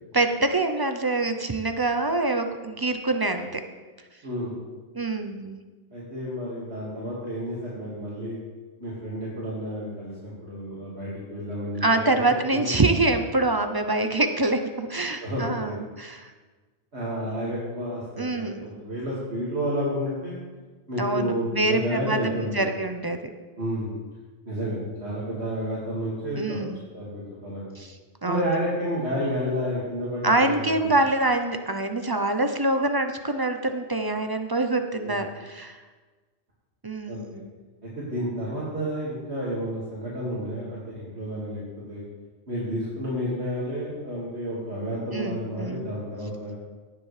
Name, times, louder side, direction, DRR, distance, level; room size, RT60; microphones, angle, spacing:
voice 1, 0.1-3.6 4.9-5.6 11.8-16.3 18.2-18.8 21.0-23.2 26.4-26.8 27.8-28.0 28.2-28.5 30.2-35.8 36.8-37.5 45.1-45.9, right 2 dB, 30° right, 6 dB, 0.5 m, -25 dB
voice 2, 4.2-4.6 5.9-8.4 8.8-11.8 12.1-12.7 15.2-15.8 16.9-20.4 20.9-22.6 23.6-23.9 24.5-26.6 26.9-27.7 28.3-31.0 35.0-35.2 37.1-37.2 37.8-41.6 41.9-42.0 42.5-46.5, equal, 70° right, -8 dB, 2.4 m, -30 dB
18.0 x 7.3 x 3.3 m, 1.3 s
omnidirectional pair, 1.2 m